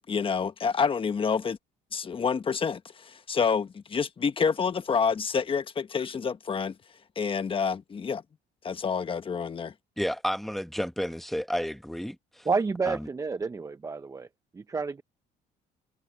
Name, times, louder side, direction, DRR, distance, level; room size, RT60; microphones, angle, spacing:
voice 1, 0.0-1.6 1.9-6.7 7.2-8.2 8.6-9.7, left 6 dB, 30° left, 1.3 m, -28 dB
voice 2, 10.0-12.5 12.9-13.1, equal, ahead, 1.3 m, -31 dB
voice 3, 12.5-14.3 14.5-15.0, right 4 dB, 20° right, 0.7 m, -29 dB
cardioid pair, 110°, 17 cm